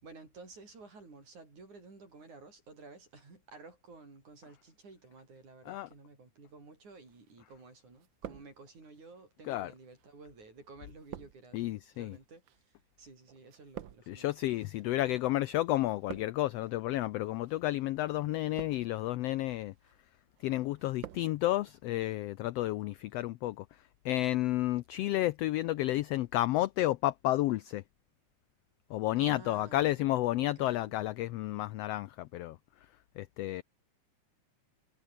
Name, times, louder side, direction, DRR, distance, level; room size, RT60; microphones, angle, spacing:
voice 1, 0.0-14.3 29.2-30.0 30.6-30.9, right 3 dB, 75° right, 8.7 m, -53 dB
sound 1, 7.1-7.7 7.9-9.0 9.7-15.3 15.6-16.6 17.3-17.6 18.3-19.1 19.5-20.0 20.4-21.3 21.6-21.7, right 11 dB, 90° right, 1.0 m, -49 dB
voice 2, 11.5-12.2 14.1-19.7 20.4-27.8 28.9-32.9 33.2-33.6, left 15 dB, 85° left, 1.4 m, -31 dB
omnidirectional pair, 3.5 m